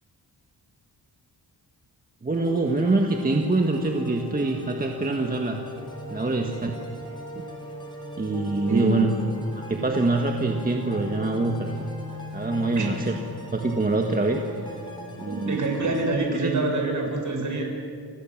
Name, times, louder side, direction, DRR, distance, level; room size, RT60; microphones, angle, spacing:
voice 1, 2.2-5.6 6.1-6.7 7.1-7.2 8.2-9.1 9.7-11.7 12.3-13.2 13.5-14.4 15.2-15.6 16.4-16.5, right 2 dB, 20° right, 2 dB, 1.6 m, -24 dB
sound 1, 2.3-16.0, left 2 dB, 10° left, 6.1 m, -39 dB
voice 2, 8.7-9.0 12.7-13.0 15.3-17.6, right 2 dB, 50° right, 2 dB, 6.4 m, -26 dB
30.0 x 25.5 x 7.4 m, 2.4 s
wide cardioid pair, 160°, 39 cm